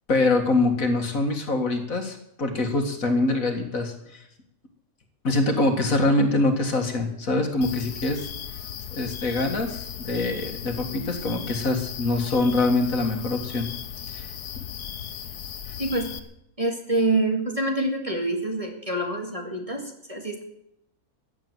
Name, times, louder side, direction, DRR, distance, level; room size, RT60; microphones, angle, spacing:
voice 1, 0.1-4.2 5.2-8.3 8.9-13.7 14.1-14.3, left 2 dB, 60° left, 5 dB, 2.3 m, -24 dB
sound 1, 7.6-16.2, left 8 dB, 85° left, 1.5 m, -37 dB
voice 2, 15.8-16.1 16.6-20.4, right 2 dB, 20° right, 2 dB, 2.0 m, -26 dB
15.0 x 9.8 x 7.9 m, 0.78 s
omnidirectional pair, 1.6 m